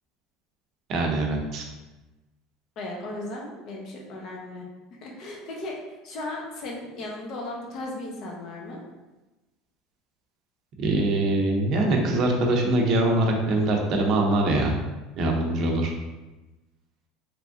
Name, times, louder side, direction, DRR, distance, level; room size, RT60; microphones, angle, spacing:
voice 1, 0.9-1.6 10.8-14.7 15.2-15.9, right 2 dB, 45° right, 1 dB, 0.6 m, -23 dB
voice 2, 2.8-4.7 5.0-5.8 6.0-8.8, left 2 dB, 45° left, -1 dB, 0.8 m, -36 dB
3.4 x 3.0 x 2.5 m, 1.1 s
cardioid pair, 145°, 0 cm